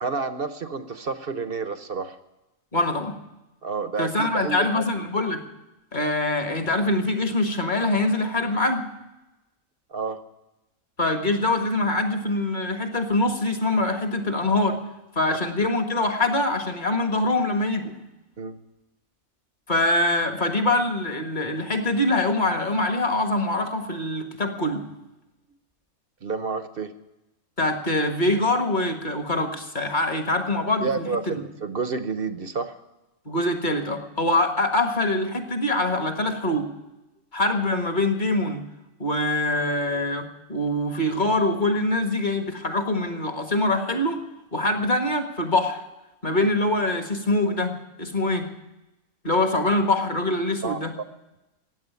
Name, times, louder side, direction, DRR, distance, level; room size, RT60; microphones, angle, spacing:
voice 1, 0.0-2.2 3.6-4.8 9.9-10.2 15.3-15.4 18.4-18.6 26.2-26.9 30.8-32.7 50.6-50.8, right 4 dB, 45° right, 10 dB, 1.0 m, -29 dB
voice 2, 2.7-3.2 4.0-5.4 5.9-8.8 11.0-14.8 15.2-17.9 19.7-24.8 27.6-31.4 33.3-36.7 37.3-38.6 39.0-44.2 44.5-45.8 46.2-48.5 49.2-50.9, left 2 dB, 35° left, 6 dB, 1.7 m, -24 dB
15.0 x 9.4 x 9.4 m, 0.98 s
omnidirectional pair, 1.5 m